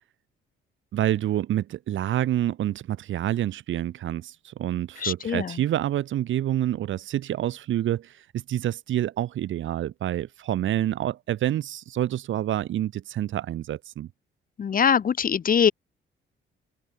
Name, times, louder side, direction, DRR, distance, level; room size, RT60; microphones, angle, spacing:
voice 1, 0.9-14.1, right 12 dB, 75° right, 3.7 m, -27 dB
voice 2, 5.0-5.5 14.6-15.7, left 7 dB, 45° left, 1.4 m, -22 dB
cardioid pair, 90°, 20 cm